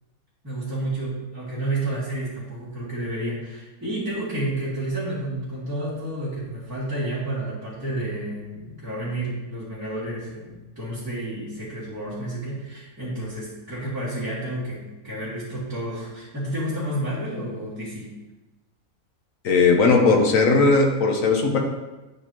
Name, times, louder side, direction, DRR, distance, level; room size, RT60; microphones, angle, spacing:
voice 1, 0.4-18.1, right 1 dB, 10° right, -14 dB, 2.2 m, -30 dB
voice 2, 19.4-21.6, left 4 dB, 70° left, 3 dB, 1.3 m, -18 dB
9.9 x 4.7 x 2.9 m, 1.1 s
omnidirectional pair, 1.5 m